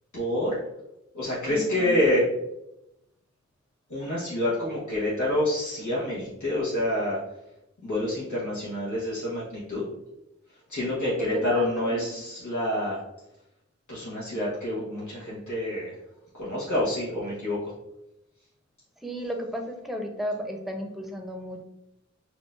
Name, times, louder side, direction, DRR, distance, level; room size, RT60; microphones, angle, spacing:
voice 1, 0.1-0.6 1.1-2.2 3.9-7.2 7.8-9.9 10.7-13.0 13.9-16.0 16.3-17.7, left 1 dB, 90° left, -8 dB, 1.0 m, -27 dB
voice 2, 1.5-1.9 11.2-12.2 19.0-21.6, equal, ahead, 3 dB, 0.7 m, -34 dB
6.2 x 2.3 x 2.5 m, 0.88 s
wide cardioid pair, 40°, 29 cm